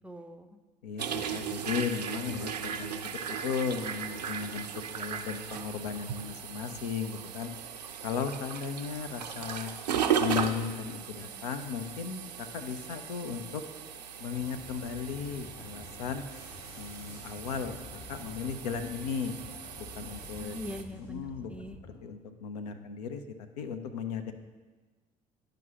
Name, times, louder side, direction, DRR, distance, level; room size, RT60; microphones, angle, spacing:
voice 1, 0.0-0.6 20.3-21.8, left 1 dB, 5° right, 6 dB, 0.5 m, -42 dB
voice 2, 0.8-4.7 4.9-7.5 8.0-9.7 10.2-13.6 14.2-16.2 16.8-17.8 18.1-19.3 19.8-20.6 21.1-21.5 22.0-23.2 23.6-24.3, left 7 dB, 70° left, 8 dB, 0.5 m, -35 dB
sound 1, 1.0-20.8, right 8 dB, 80° right, 0.4 m, -37 dB
sound 2, 14.3-22.0, left 3 dB, 55° left, 1.8 m, -49 dB
10.5 x 5.1 x 2.9 m, 1.3 s
figure-of-eight pair, 55°, 21 cm